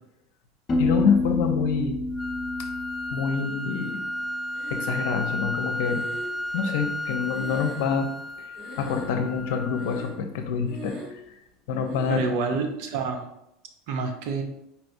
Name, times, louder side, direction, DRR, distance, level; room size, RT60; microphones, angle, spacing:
Piano, 0.7-4.4, left 2 dB, 30° left, 0.7 m, -29 dB
voice 1, 0.8-2.0 3.1-4.0 4.7-6.0 6.5-8.1 8.4-8.5 8.8-11.0 11.7-12.3, left 6 dB, 75° left, 5 dB, 0.6 m, -26 dB
sound 1, 2.2-10.2, left 1 dB, 10° left, 0.4 m, -33 dB
Breathing, 4.5-5.2 5.8-8.3 8.5-9.4 9.7-10.3 10.6-11.3 11.9-12.4, right 1 dB, 50° right, 1.4 m, -42 dB
voice 2, 12.1-13.3 13.9-14.4, right 4 dB, 65° right, 5 dB, 0.6 m, -28 dB
4.4 x 3.3 x 2.6 m, 0.82 s
supercardioid pair, 100°, 0 cm